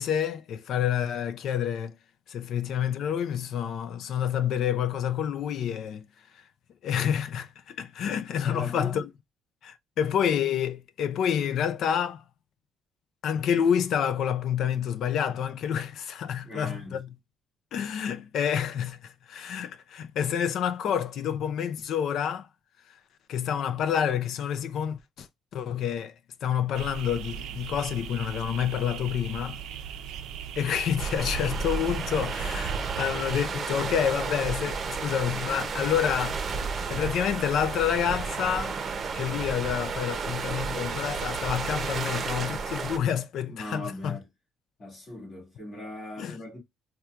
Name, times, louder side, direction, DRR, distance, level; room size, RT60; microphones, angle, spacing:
voice 1, 0.0-2.0 2.3-6.1 6.3-6.5 6.8-9.1 9.6-12.2 13.2-17.1 17.7-22.5 22.9-23.0 23.3-25.3 25.5-26.2 26.4-29.6 30.6-38.8 39.1-44.2 46.2-46.4, left 8 dB, 60° left, 0.5 m, -28 dB
voice 2, 8.4-9.0 16.4-17.0 43.5-44.3 44.8-46.6, left 1 dB, 40° left, 2.1 m, -39 dB
sound 1, 26.7-33.5, right 8 dB, 80° right, 0.5 m, -39 dB
sound 2, 31.0-43.0, right 5 dB, 35° right, 0.7 m, -32 dB
4.3 x 2.3 x 2.4 m
cardioid pair, 155°, 0 cm